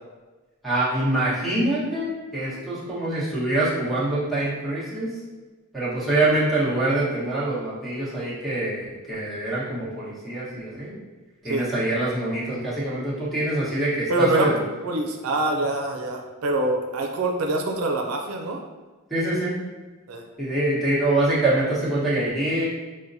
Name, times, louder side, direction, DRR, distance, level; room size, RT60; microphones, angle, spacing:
voice 1, 0.6-5.1 5.7-10.9 11.4-14.6 19.1-19.6 20.4-22.7, right 1 dB, ahead, -9 dB, 1.2 m, -25 dB
voice 2, 14.1-14.5 14.8-18.6 20.1-20.2, right 2 dB, 85° right, 2 dB, 0.5 m, -24 dB
6.1 x 2.1 x 2.6 m, 1.2 s
head